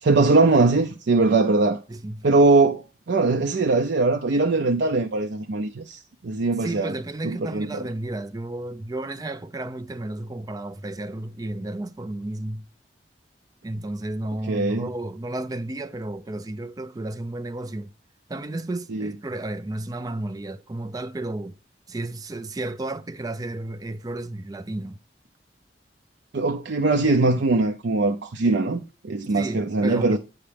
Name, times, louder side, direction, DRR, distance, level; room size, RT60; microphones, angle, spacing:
voice 1, 0.0-1.8 2.2-6.9 7.2-7.8 14.5-14.9 18.9-19.1 26.3-30.2, right 3 dB, 75° right, 0.5 m, -21 dB
voice 2, 1.9-2.3 6.6-12.7 13.6-17.9 18.3-21.6 21.9-25.0 29.3-30.2, right 1 dB, 20° right, 0.4 m, -32 dB
8.6 x 5.8 x 3.3 m
head